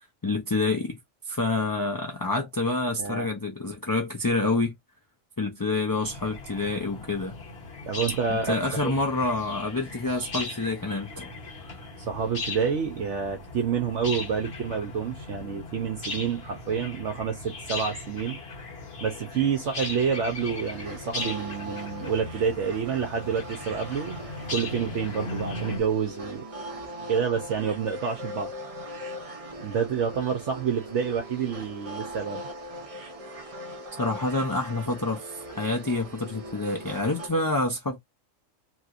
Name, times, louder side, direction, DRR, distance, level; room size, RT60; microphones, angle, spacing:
voice 1, 0.2-1.0 1.3-4.7 5.4-7.3 8.3-11.3 34.0-38.0, left 2 dB, 30° left, 0.4 m, -27 dB
sound 1, 6.0-25.8, left 2 dB, 50° left, 1.3 m, -38 dB
voice 2, 7.9-8.6 8.8-8.9 12.1-18.4 19.0-26.5 27.1-28.5 29.6-32.4, right 6 dB, 65° right, 1.0 m, -28 dB
sound 2, 20.3-37.3, equal, 35° right, 0.7 m, -40 dB
3.0 x 2.9 x 2.5 m
omnidirectional pair, 1.4 m